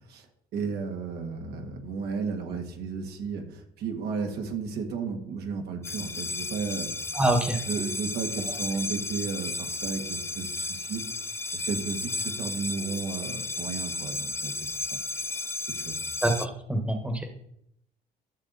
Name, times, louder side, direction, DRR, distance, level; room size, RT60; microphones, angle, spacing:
voice 1, 0.5-6.9 7.7-11.0 11.5-14.6 14.9-15.0 15.6-16.0, right 5 dB, 70° right, 3 dB, 1.8 m, -33 dB
sound 1, 5.8-16.5, left 3 dB, 15° left, 0.4 m, -33 dB
voice 2, 7.1-7.6 16.2-17.3, right 1 dB, 5° right, 5 dB, 1.4 m, -25 dB
13.0 x 6.5 x 4.1 m, 0.73 s
cardioid pair, 110°, 17 cm